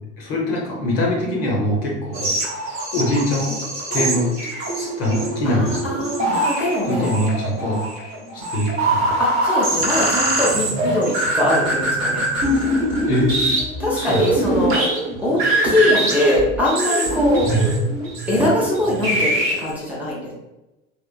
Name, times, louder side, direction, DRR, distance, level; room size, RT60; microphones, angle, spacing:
voice 1, 0.2-2.3 2.6-3.6 3.9-4.3 4.7-6.0 6.9-7.8 8.3-9.0 13.1-13.6 13.9-14.2 17.5-17.6, left 1 dB, 50° left, -3 dB, 1.0 m, -23 dB
sound 1, 2.1-19.7, right 1 dB, 35° right, 0.9 m, -22 dB
voice 2, 5.4-7.1 9.2-12.3 13.8-14.9 15.2-17.5 18.3-20.3, left 1 dB, 5° right, -6 dB, 0.9 m, -22 dB
3.5 x 2.5 x 2.3 m, 0.99 s
figure-of-eight pair, 75°, 38 cm